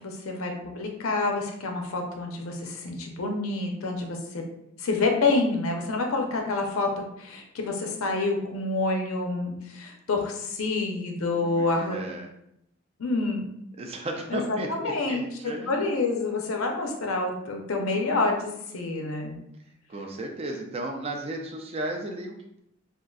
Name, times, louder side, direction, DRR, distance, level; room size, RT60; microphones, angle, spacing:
voice 1, 0.0-4.4 4.8-12.0 13.0-13.4 14.3-14.4 14.7-19.3, left 3 dB, 80° left, 2 dB, 0.6 m, -28 dB
voice 2, 11.3-12.3 13.8-15.9 19.9-22.6, right 2 dB, 30° right, 2 dB, 0.3 m, -34 dB
3.6 x 2.4 x 2.3 m, 0.78 s
head